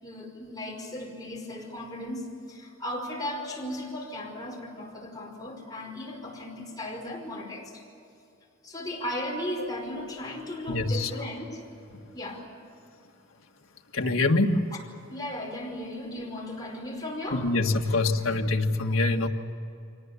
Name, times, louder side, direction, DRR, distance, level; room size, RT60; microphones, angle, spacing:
voice 1, 0.0-7.8 8.6-11.6 12.1-12.4 15.1-17.5, left 1 dB, 20° left, -1 dB, 5.0 m, -36 dB
voice 2, 10.7-11.1 13.9-14.6 17.3-19.3, left 2 dB, 75° left, 3 dB, 1.7 m, -25 dB
24.5 x 19.0 x 8.4 m, 2.7 s
head